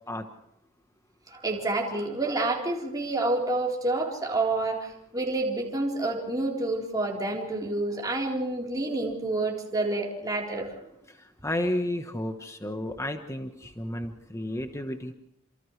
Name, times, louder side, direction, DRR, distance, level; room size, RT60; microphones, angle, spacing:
voice 1, 1.3-10.7, right 2 dB, 15° right, -1 dB, 4.0 m, -28 dB
voice 2, 11.1-15.1, left 1 dB, 15° left, 6 dB, 1.2 m, -32 dB
29.0 x 27.5 x 3.3 m, 0.78 s
head